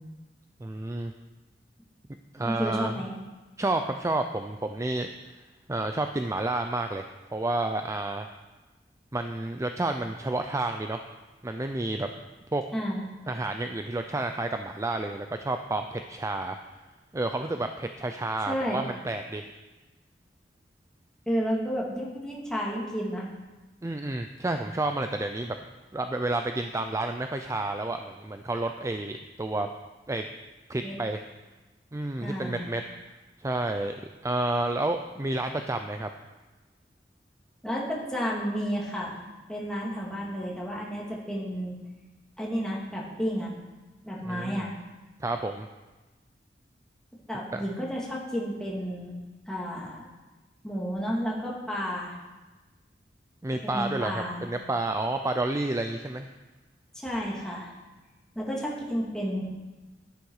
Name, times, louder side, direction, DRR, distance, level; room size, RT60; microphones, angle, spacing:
voice 1, 0.6-1.1 2.3-3.0 3.6-5.1 5.7-8.3 9.1-11.0 11.4-12.1 12.5-12.6 13.3-16.6 17.1-19.5 23.8-25.6 25.9-29.7 30.1-30.3 30.7-31.2 31.9-32.8 33.4-33.9 34.2-36.1 44.3-44.7 45.2-45.7 47.5-47.6 53.4-56.3, right 2 dB, 20° right, 6 dB, 0.5 m, -30 dB
voice 2, 2.4-3.1 12.7-13.0 18.5-18.9 21.3-23.3 30.8-31.0 32.2-32.7 37.6-39.2 39.5-41.8 42.4-43.5 44.0-44.7 47.3-49.2 49.5-50.0 50.6-52.1 53.6-54.5 56.9-57.7 58.4-59.5, equal, 5° left, -4 dB, 2.4 m, -31 dB
11.5 x 10.0 x 4.8 m, 1.2 s
head